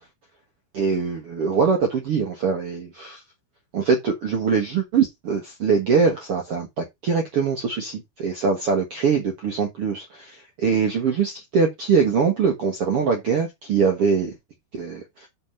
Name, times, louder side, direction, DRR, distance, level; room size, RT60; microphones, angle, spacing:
voice 1, 0.7-3.2 3.7-14.3 14.7-15.0, right 5 dB, 60° right, 1.5 m, -23 dB
6.4 x 5.8 x 5.4 m
omnidirectional pair, 4.7 m